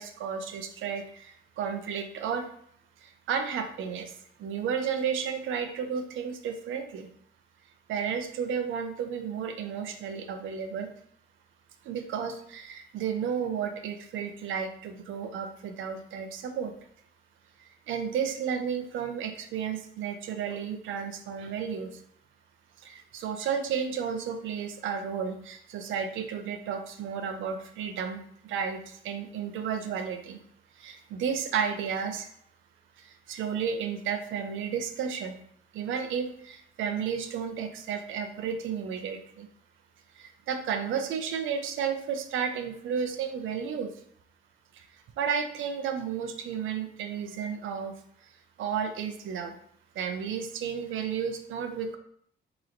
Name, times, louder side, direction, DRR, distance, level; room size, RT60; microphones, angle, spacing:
voice 1, 0.0-2.5 3.0-4.1 4.4-7.1 7.9-10.9 11.8-16.7 17.6-21.9 22.8-30.4 30.8-32.3 33.0-35.4 35.7-39.5 40.2-43.9 44.7-47.9 48.2-48.3 48.6-49.6 50.0-52.0, right 7 dB, 80° right, 7 dB, 0.5 m, -32 dB
4.1 x 3.0 x 2.5 m, 0.65 s
cardioid pair, 90°, 20 cm